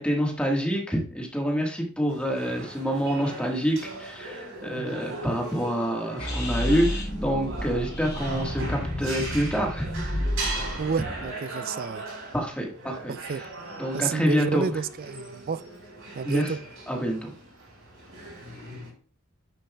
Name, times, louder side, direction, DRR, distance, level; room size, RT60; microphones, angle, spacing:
voice 1, 0.0-9.9 12.3-13.4 13.8-14.8 16.2-16.5 16.9-17.3, equal, 5° left, 1.5 m, -27 dB
sound 1, 2.1-18.9, right 2 dB, 65° right, 4.3 m, -39 dB
sound 2, 6.2-11.3, left 1 dB, 35° left, 3.0 m, -31 dB
voice 2, 10.8-12.0 13.1-13.4 13.9-15.6 16.2-16.6, right 5 dB, 40° right, 0.4 m, -30 dB
10.5 x 7.2 x 2.3 m
head